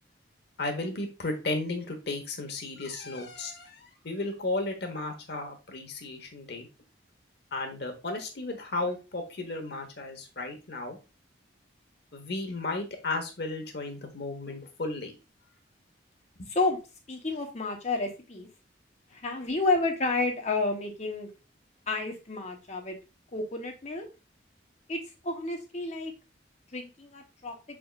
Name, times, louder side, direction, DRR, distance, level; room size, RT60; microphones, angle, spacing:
voice 1, 0.6-6.7 7.5-11.0 12.1-15.2 16.4-16.5, left 2 dB, 60° left, 4 dB, 1.1 m, -34 dB
voice 2, 17.1-18.5 19.2-21.3 21.9-23.0 23.3-24.1 24.9-25.0 25.2-26.1 26.7-27.5, left 3 dB, 35° left, 3 dB, 1.0 m, -30 dB
5.8 x 3.6 x 2.4 m, 0.30 s
head